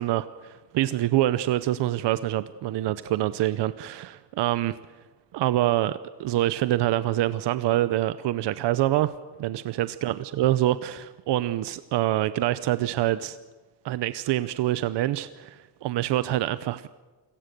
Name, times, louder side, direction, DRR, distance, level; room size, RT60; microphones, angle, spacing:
voice 1, 0.0-4.8 5.3-9.1 9.4-13.4 13.8-16.9, right 14 dB, 75° right, 14 dB, 0.8 m, -26 dB
28.5 x 18.0 x 6.8 m, 1.2 s
cardioid pair, 175°, 42 cm